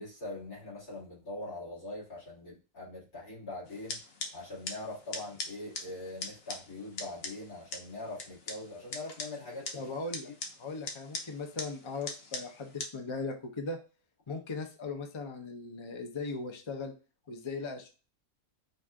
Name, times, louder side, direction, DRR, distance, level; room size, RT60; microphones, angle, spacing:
voice 1, 0.0-4.0 4.3-9.9, left 2 dB, 80° left, -7 dB, 2.9 m, -42 dB
sound 1, 3.7-12.9, left 3 dB, 50° left, 0.9 m, -43 dB
voice 2, 9.7-10.3 10.6-13.8 14.3-16.9 17.3-17.9, left 3 dB, 30° left, 3 dB, 0.6 m, -38 dB
5.1 x 2.5 x 3.6 m, 0.32 s
omnidirectional pair, 1.5 m